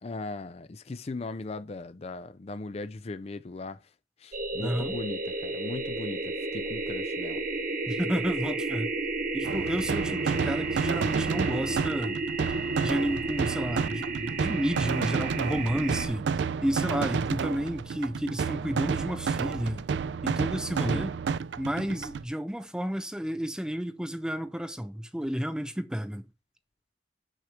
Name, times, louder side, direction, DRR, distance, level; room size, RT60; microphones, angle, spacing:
voice 1, 0.0-3.8 4.2-7.4 20.8-21.1, left 2 dB, 35° left, 0.5 m, -38 dB
sound 1, 4.3-16.1, right 3 dB, 45° right, 1.3 m, -32 dB
voice 2, 4.6-5.0 7.9-8.9 9.3-12.2 12.8-19.9 20.2-21.1 21.6-26.3, equal, 5° right, 0.6 m, -31 dB
sound 2, 9.4-22.2, right 5 dB, 70° right, 0.4 m, -30 dB
6.4 x 4.5 x 5.0 m
head